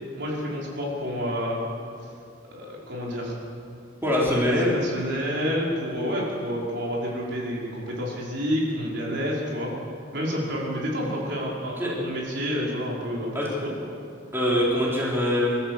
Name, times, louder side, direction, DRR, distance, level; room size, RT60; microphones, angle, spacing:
voice 1, 0.2-1.6 2.5-3.4 4.2-4.6 4.8-9.7 10.1-13.3 13.6-13.7, equal, 60° right, -4 dB, 5.3 m, -29 dB
voice 2, 4.0-4.7 11.8-11.9 13.3-13.5 14.3-15.6, left 1 dB, 10° right, -5 dB, 4.3 m, -23 dB
26.5 x 14.0 x 8.1 m, 2.4 s
head